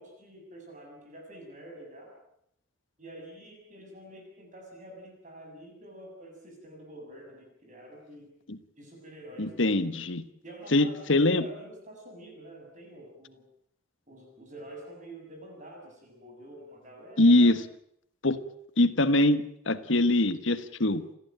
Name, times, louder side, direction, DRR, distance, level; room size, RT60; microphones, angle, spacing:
voice 1, 0.0-2.2 3.0-8.3 8.8-9.5 10.4-13.5 14.1-17.5, right 1 dB, 40° right, 1 dB, 7.0 m, -47 dB
voice 2, 9.4-10.2 10.7-11.4 17.2-17.6 18.2-18.4 18.8-21.0, left 2 dB, 65° left, 12 dB, 1.5 m, -23 dB
29.0 x 14.5 x 9.1 m, 0.73 s
head